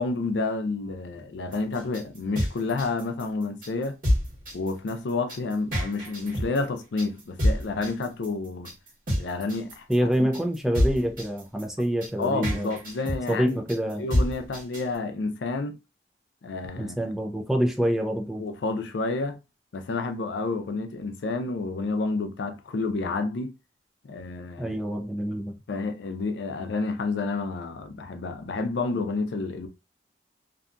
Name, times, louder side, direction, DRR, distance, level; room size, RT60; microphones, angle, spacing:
voice 1, 0.0-4.0 4.5-8.7 9.2-10.3 12.2-13.6 14.0-15.8 16.4-17.0 18.4-19.4 19.7-23.5 24.0-24.8 25.7-29.7, left 3 dB, 80° left, 0.4 m, -30 dB
sound 1, 1.5-15.0, equal, 50° right, 1.3 m, -28 dB
voice 2, 9.9-12.7 13.3-14.0 16.7-18.4 24.6-25.5, equal, ahead, 0.3 m, -26 dB
2.6 x 2.2 x 2.5 m
head